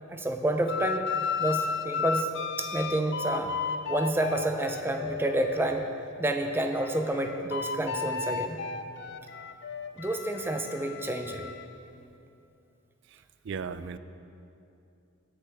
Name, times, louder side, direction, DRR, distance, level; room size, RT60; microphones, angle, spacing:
voice 1, 0.1-1.1 1.4-2.3 2.6-3.6 3.9-5.8 6.2-8.6 10.0-11.4, right 1 dB, 10° right, 5 dB, 0.5 m, -29 dB
sound 1, 0.7-5.9 6.4-11.7, left 5 dB, 55° left, 0.4 m, -34 dB
voice 2, 13.1-14.0, right 5 dB, 60° right, 13 dB, 0.4 m, -37 dB
17.5 x 6.6 x 3.5 m, 2.7 s
head